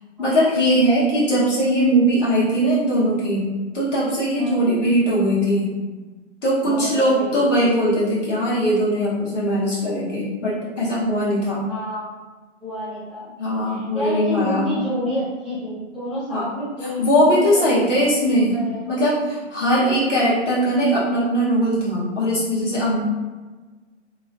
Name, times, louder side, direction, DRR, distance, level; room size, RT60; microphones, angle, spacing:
voice 1, 0.2-3.5 3.7-5.7 6.4-11.6 13.4-14.7 16.3-16.4 17.0-18.6 18.9-23.0, equal, 90° left, -8 dB, 1.3 m, -20 dB
voice 2, 4.4-4.7 6.6-7.7 11.7-12.1 12.6-13.3 13.6-18.9 19.8-20.0, equal, ahead, -15 dB, 0.4 m, -29 dB
3.0 x 2.2 x 2.6 m, 1.3 s
hypercardioid pair, 135°, 36 cm